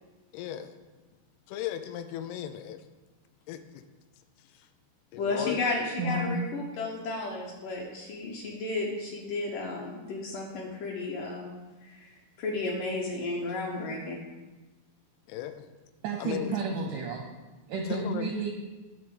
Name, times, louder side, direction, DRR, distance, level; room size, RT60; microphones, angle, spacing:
voice 1, 0.3-0.7 1.5-2.9 3.5-3.8 4.4-4.7 5.1-5.6 15.3-15.7 16.2-16.5 17.9-18.3, left 11 dB, 90° left, 9 dB, 2.6 m, -37 dB
voice 2, 5.2-14.2, left 3 dB, 70° left, -2 dB, 2.2 m, -33 dB
voice 3, 6.0-6.4 16.0-17.2 17.7-18.5, right 3 dB, 80° right, 2 dB, 1.8 m, -31 dB
9.8 x 3.3 x 6.8 m, 1.2 s
omnidirectional pair, 4.5 m